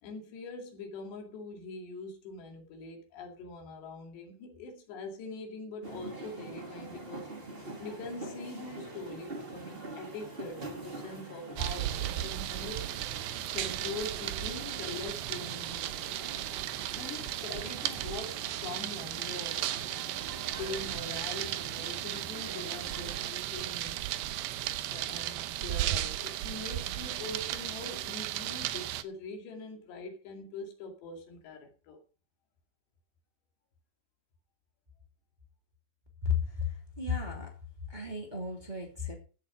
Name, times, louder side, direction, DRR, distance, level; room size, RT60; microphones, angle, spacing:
voice 1, 0.0-7.3 7.6-12.9 13.5-16.3 16.9-19.9 20.5-24.0 24.9-32.0, left 3 dB, 75° left, 4.5 m, -43 dB
sound 1, 5.8-23.3, right 2 dB, 30° right, 1.0 m, -46 dB
sound 2, 11.6-29.0, right 13 dB, 80° right, 2.3 m, -35 dB
voice 2, 36.2-37.5 37.9-39.1, left 6 dB, 15° right, 2.0 m, -33 dB
15.5 x 7.3 x 5.2 m
omnidirectional pair, 5.0 m